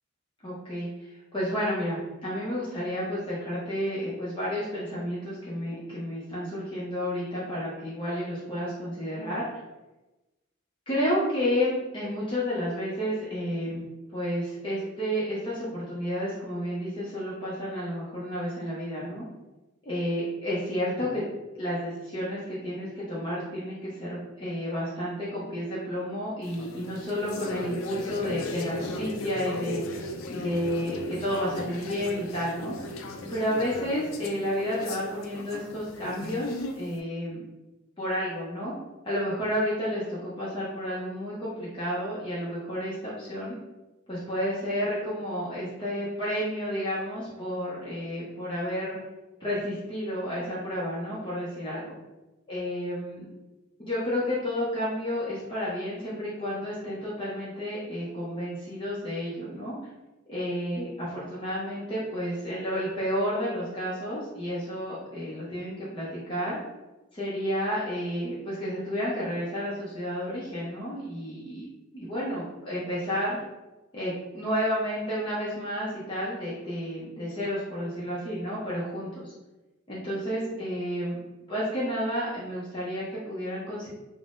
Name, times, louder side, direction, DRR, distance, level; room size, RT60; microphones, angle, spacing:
voice 1, 0.4-9.6 10.9-13.8 14.1-19.2 19.8-21.2 21.6-32.7 33.3-37.4 38.0-38.7 39.0-43.5 44.1-49.0 49.4-52.0 52.5-53.3 53.8-59.8 60.3-66.6 67.1-71.7 71.9-73.4 73.9-79.3 79.9-81.2 81.5-83.9, equal, 25° left, -8 dB, 0.6 m, -31 dB
sound 1, 26.4-36.9, left 2 dB, 80° left, 0.3 m, -37 dB
3.5 x 2.0 x 2.5 m, 1.1 s
head